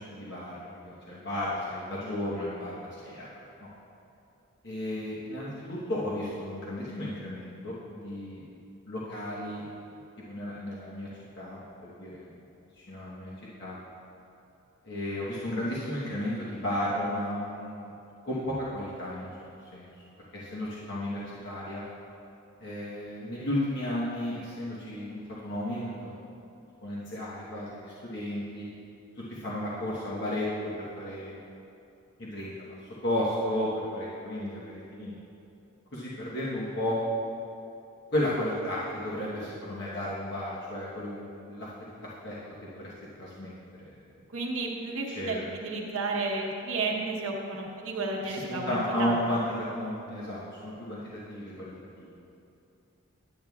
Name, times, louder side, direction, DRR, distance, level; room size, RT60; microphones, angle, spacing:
voice 1, 0.0-3.3 3.6-3.7 4.6-8.4 8.9-9.6 10.3-11.1 11.4-12.3 12.8-13.3 13.6-13.8 14.8-17.9 18.2-19.3 19.7-19.9 20.3-21.8 22.6-26.2 26.8-28.7 29.2-30.5 30.8-31.4 32.2-34.6 34.9-35.2 35.9-37.0 38.1-41.7 42.0-42.4 42.6-42.9 43.2-43.5 43.8-44.0 45.2-45.4 48.3-52.2, left 1 dB, 50° left, -7 dB, 1.1 m, -33 dB
voice 2, 44.3-49.2, right 3 dB, 75° right, 0 dB, 1.0 m, -32 dB
10.5 x 8.6 x 2.3 m, 2.7 s
head